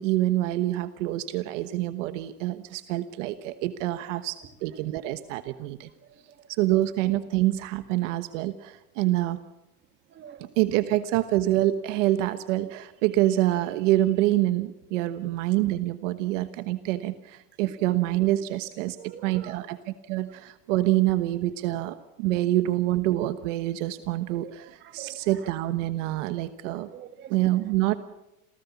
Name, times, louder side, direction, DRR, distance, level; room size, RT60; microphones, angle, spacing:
voice 1, 0.0-5.9 6.6-9.4 10.6-26.9 27.3-28.0, right 15 dB, 50° right, 11 dB, 1.2 m, -26 dB
voice 2, 6.0-6.5 9.0-9.1 10.1-10.5 17.6-17.7 18.1-18.2 18.9-19.6 24.4-25.5 26.9-27.4, right 9 dB, 25° right, 9 dB, 1.8 m, -46 dB
28.0 x 17.5 x 7.2 m, 0.96 s
supercardioid pair, 170°, 46 cm